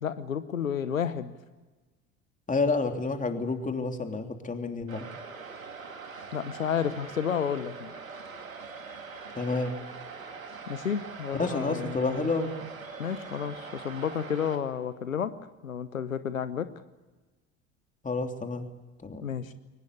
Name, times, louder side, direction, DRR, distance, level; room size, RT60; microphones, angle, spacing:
voice 1, 0.0-1.3 6.3-7.9 10.7-12.1 13.0-15.3 15.6-16.7 19.2-19.5, left 8 dB, 90° left, 13 dB, 1.0 m, -31 dB
voice 2, 2.5-5.0 9.3-9.7 11.3-12.5 18.0-18.6 19.0-19.5, left 3 dB, 20° left, 5 dB, 3.3 m, -29 dB
sound 1, 4.9-14.6, right 4 dB, 90° right, 2.6 m, -43 dB
22.5 x 19.5 x 8.3 m, 1.2 s
figure-of-eight pair, 70°, 39 cm